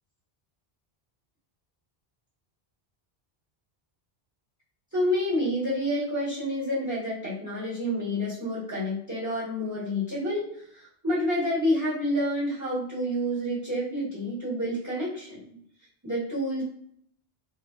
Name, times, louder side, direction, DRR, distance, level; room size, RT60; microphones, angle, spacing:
voice 1, 4.9-15.4 16.0-16.6, equal, 15° right, -7 dB, 1.3 m, -28 dB
3.5 x 2.2 x 2.4 m, 0.64 s
omnidirectional pair, 1.0 m